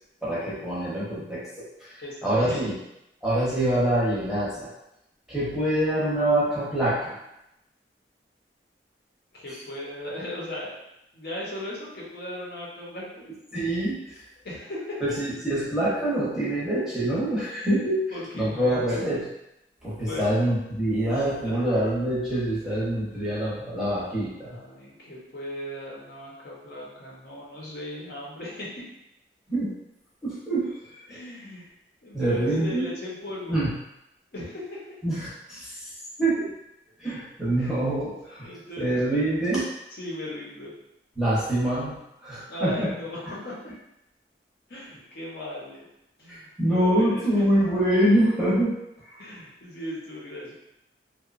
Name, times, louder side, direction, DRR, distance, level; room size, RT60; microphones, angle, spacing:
voice 1, 0.2-2.7 3.2-4.7 5.3-7.1 13.5-14.2 15.0-18.0 18.3-19.3 19.8-24.6 29.5-29.7 30.2-30.8 31.1-31.2 32.1-32.8 33.5-33.8 35.0-35.8 36.2-36.5 37.0-39.7 41.2-42.9 46.3-48.7, right 1 dB, 5° right, -9 dB, 0.7 m, -25 dB
voice 2, 2.0-2.7 9.3-10.8 11.1-13.3 14.4-15.2 18.1-18.9 20.0-20.3 21.4-21.8 24.4-28.8 31.1-31.7 32.0-33.6 34.3-34.9 37.6-37.7 38.4-39.6 40.0-40.7 42.5-43.5 44.7-45.9 46.2-47.4 49.2-50.5, left 1 dB, 60° left, -5 dB, 0.7 m, -37 dB
2.8 x 2.1 x 2.4 m, 0.85 s
head